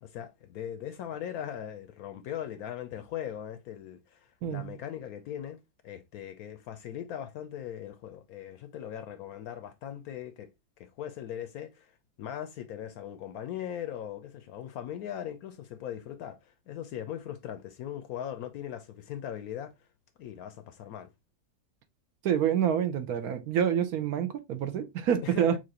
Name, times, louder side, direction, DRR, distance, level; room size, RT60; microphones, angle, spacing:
voice 1, 0.0-5.6 5.8-10.5 10.8-11.9 12.2-19.7 20.2-21.1 25.2-25.6, left 10 dB, 70° left, 0.9 m, -39 dB
voice 2, 22.2-25.5, right 9 dB, 65° right, 1.1 m, -27 dB
5.9 x 2.5 x 2.8 m
omnidirectional pair, 1.8 m